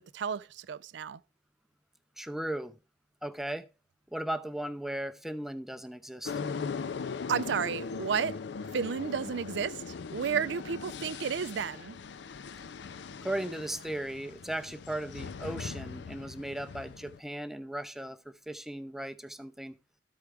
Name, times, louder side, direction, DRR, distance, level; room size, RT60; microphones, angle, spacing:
voice 1, 0.1-1.2 7.3-8.4 8.7-12.0, right 7 dB, 75° right, 0.4 m, -32 dB
voice 2, 2.2-2.7 3.2-3.6 4.1-6.3 13.2-19.8, right 1 dB, ahead, 0.5 m, -37 dB
sound 1, 6.2-17.2, left 5 dB, 70° left, 0.4 m, -40 dB
13.5 x 4.7 x 3.3 m
head